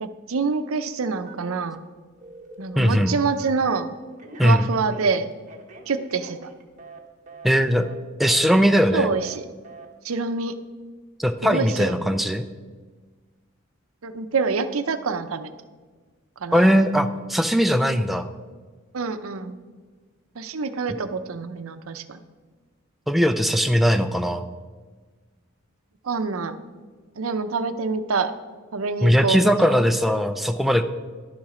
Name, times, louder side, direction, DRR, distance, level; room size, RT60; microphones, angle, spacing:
voice 1, 0.0-1.8 2.6-3.9 4.4-5.3 5.9-6.5 8.9-9.4 10.0-10.5 11.4-12.1 14.0-15.5 16.4-16.8 18.9-19.6 20.4-22.2 26.0-26.6 27.2-28.3 28.7-29.8, right 4 dB, 75° right, 11 dB, 0.6 m, -26 dB
Telephone, 1.3-1.9 2.2-3.8 4.2-7.0 7.3-7.5 7.7-7.9 8.2-8.4 8.7-8.9 9.2-9.4 9.6-9.9, right 3 dB, 35° right, 1.1 m, -44 dB
voice 2, 2.8-3.2 4.4-4.7 7.4-7.9 8.2-9.1 11.2-12.4 16.5-18.3 23.1-24.5 29.0-30.8, equal, ahead, 7 dB, 0.4 m, -19 dB
11.5 x 7.3 x 4.9 m, 1.4 s
head